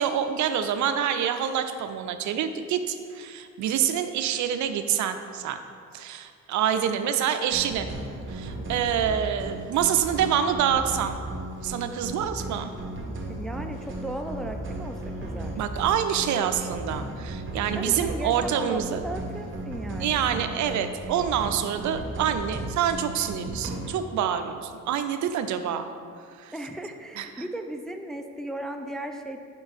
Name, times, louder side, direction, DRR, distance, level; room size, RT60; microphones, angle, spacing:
voice 1, 0.0-5.6 5.9-7.9 8.3-11.2 11.6-12.7 15.6-19.0 20.0-25.8 26.3-26.5 27.2-27.3, right 9 dB, 70° right, 9 dB, 0.5 m, -26 dB
sound 1, 7.5-24.0, right 1 dB, 40° right, 1.1 m, -36 dB
voice 2, 13.3-15.6 17.8-20.5 26.5-29.4, right 1 dB, ahead, 4 dB, 0.4 m, -36 dB
sound 2, 13.7-16.5, left 1 dB, 45° left, 1.3 m, -44 dB
5.2 x 4.5 x 5.1 m, 2.3 s
cardioid pair, 90°, 30 cm